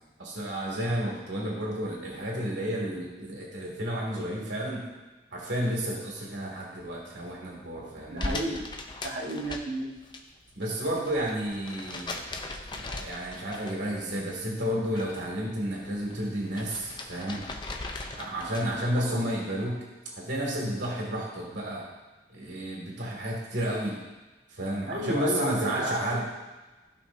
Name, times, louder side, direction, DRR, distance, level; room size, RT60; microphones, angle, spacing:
voice 1, 0.2-4.8 5.3-8.3 10.6-12.1 12.8-17.4 18.1-19.8 20.2-21.8 22.3-24.0 24.5-26.2, equal, 75° right, -3 dB, 2.4 m, -31 dB
voice 2, 8.1-8.7 9.0-9.9 19.0-19.4 24.9-26.0, right 1 dB, 55° right, -2 dB, 1.5 m, -32 dB
sound 1, 8.2-10.2 10.5-14.0 14.3-15.3 15.6-18.8, left 2 dB, 25° left, 0.6 m, -39 dB
15.5 x 5.8 x 2.7 m, 1.2 s
head